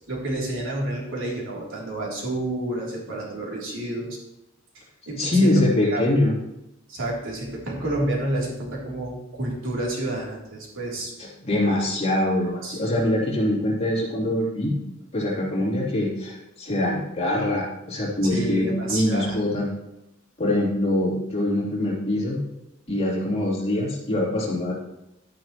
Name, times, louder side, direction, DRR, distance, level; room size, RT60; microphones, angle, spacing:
voice 1, 0.1-4.2 5.1-5.5 5.8-6.0 6.9-11.1 12.4-13.1 18.2-19.4, right 1 dB, 85° right, -4 dB, 3.2 m, -29 dB
voice 2, 5.1-6.3 11.2-14.8 15.1-19.7 20.4-22.4 22.9-24.7, left 1 dB, 30° left, -5 dB, 3.3 m, -23 dB
11.5 x 9.7 x 3.1 m, 0.89 s
head